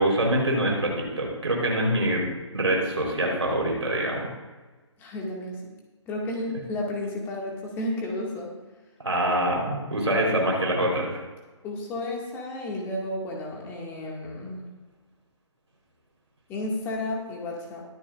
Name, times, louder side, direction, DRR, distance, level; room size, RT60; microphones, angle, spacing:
voice 1, 0.0-2.2 2.5-4.3 9.0-11.2, right 1 dB, 70° right, -1 dB, 4.0 m, -25 dB
voice 2, 5.0-5.8 6.1-8.5 11.6-14.6 16.5-17.8, left 1 dB, 15° left, -1 dB, 2.0 m, -32 dB
22.0 x 8.6 x 2.5 m, 1.3 s
figure-of-eight pair, 140°, 16 cm